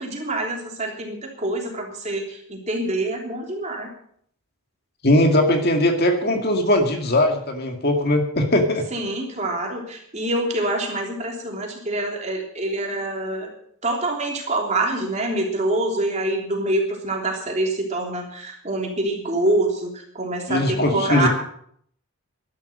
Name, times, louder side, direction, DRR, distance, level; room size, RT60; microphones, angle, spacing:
voice 1, 0.0-3.9 8.9-13.5 13.8-21.3, right 2 dB, 30° right, 1 dB, 3.3 m, -26 dB
voice 2, 5.0-8.8 20.5-21.3, left 1 dB, 45° left, 4 dB, 2.2 m, -19 dB
13.0 x 12.0 x 6.6 m, 0.64 s
head